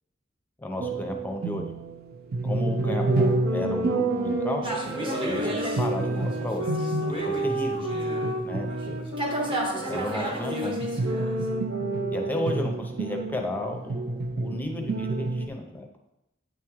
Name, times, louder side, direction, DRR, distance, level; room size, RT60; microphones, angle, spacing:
voice 1, 0.6-1.7 2.4-4.6 5.2-6.6 7.1-7.8 8.4-9.0 9.9-10.8 12.1-15.9, left 1 dB, 10° left, 2 dB, 0.6 m, -33 dB
sound 1, 0.8-9.4 10.8-15.5, right 3 dB, 50° right, 0.4 m, -30 dB
sound 2, 2.8-12.8, equal, 85° right, 0.8 m, -32 dB
sound 3, 4.6-8.3 8.7-11.5, right 1 dB, 25° right, 0.9 m, -33 dB
8.8 x 3.1 x 3.6 m, 0.90 s
head